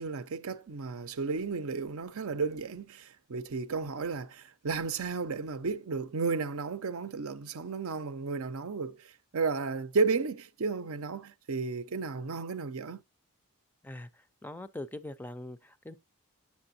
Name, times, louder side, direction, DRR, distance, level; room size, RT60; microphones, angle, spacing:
voice 1, 0.0-13.0, right 4 dB, 70° right, 0.6 m, -33 dB
voice 2, 13.8-16.0, left 1 dB, 10° left, 0.4 m, -42 dB
8.7 x 6.8 x 2.7 m
head